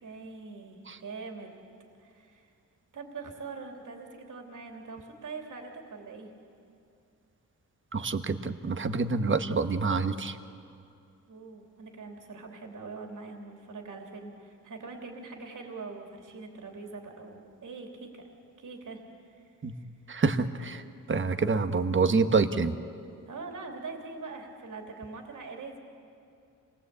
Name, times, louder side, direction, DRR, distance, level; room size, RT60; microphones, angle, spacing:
voice 1, 0.0-1.5 2.0-2.5 2.9-6.3 11.3-18.2 18.6-19.8 20.9-21.1 23.3-25.8, right 4 dB, 65° right, 2 dB, 3.2 m, -43 dB
voice 2, 7.9-10.4 19.6-19.8 20.1-22.8, right 4 dB, 35° right, 9 dB, 1.3 m, -27 dB
27.0 x 19.5 x 8.4 m, 2.5 s
cardioid pair, 95°, 33 cm